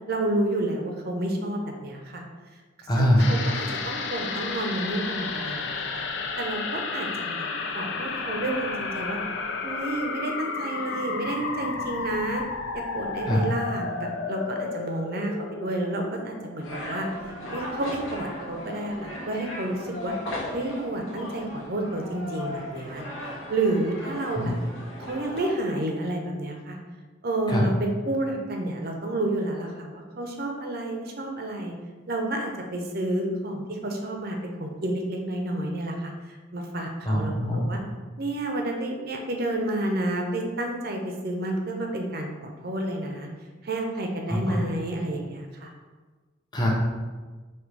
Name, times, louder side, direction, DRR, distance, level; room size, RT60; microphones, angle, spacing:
voice 1, 0.1-2.2 3.0-6.0 6.4-7.5 7.7-9.2 9.6-12.4 12.7-15.4 15.6-20.1 20.5-24.6 25.1-26.8 27.2-31.7 32.1-37.8 38.2-43.3 43.6-45.7, right 1 dB, 50° right, 2 dB, 0.6 m, -30 dB
voice 2, 2.9-3.3 13.3-13.4 24.4-24.5 27.5-27.6 37.1-37.6 44.3-44.6 46.5-46.7, equal, 20° left, -3 dB, 0.7 m, -23 dB
sound 1, 3.2-17.8 18.1-18.2, left 4 dB, 60° left, 0.4 m, -32 dB
sound 2, 16.6-25.5, left 1 dB, 85° left, 0.9 m, -37 dB
5.1 x 2.8 x 3.2 m, 1.3 s
head